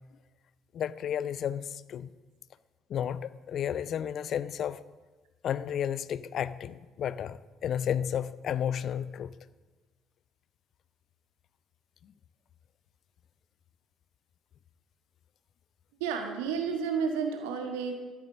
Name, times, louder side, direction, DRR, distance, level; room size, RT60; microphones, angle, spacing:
voice 1, 0.7-2.1 2.9-4.8 5.4-9.3, left 9 dB, 50° left, 16 dB, 0.5 m, -32 dB
voice 2, 16.0-17.9, right 6 dB, 70° right, 4 dB, 1.4 m, -31 dB
13.0 x 10.0 x 6.5 m, 1.3 s
figure-of-eight pair, 50°, 0 cm